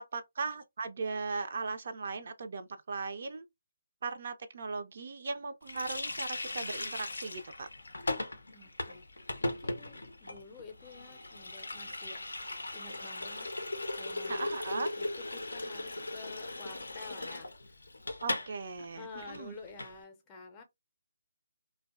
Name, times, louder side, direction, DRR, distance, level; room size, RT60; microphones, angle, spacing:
voice 1, 0.1-3.4 4.0-7.7 14.3-14.9 18.2-19.5, right 4 dB, 55° right, 0.3 m, -38 dB
Water tap faucet, 5.7-18.5 18.8-18.9 19.2-19.9, left 2 dB, 80° left, 0.4 m, -38 dB
voice 2, 8.5-13.5 13.9-17.7 18.8-20.6, left 4 dB, 20° left, 0.5 m, -50 dB
2.5 x 2.2 x 2.3 m
figure-of-eight pair, 145°, 0 cm